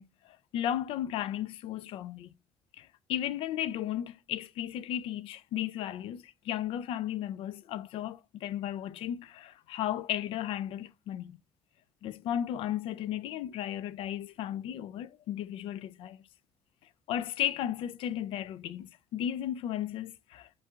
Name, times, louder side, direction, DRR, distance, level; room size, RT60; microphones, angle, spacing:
voice 1, 0.0-2.3 2.8-11.4 12.0-16.2 17.1-20.6, left 11 dB, 70° left, 0.4 m, -35 dB
5.3 x 3.9 x 2.3 m
cardioid pair, 120°, 9 cm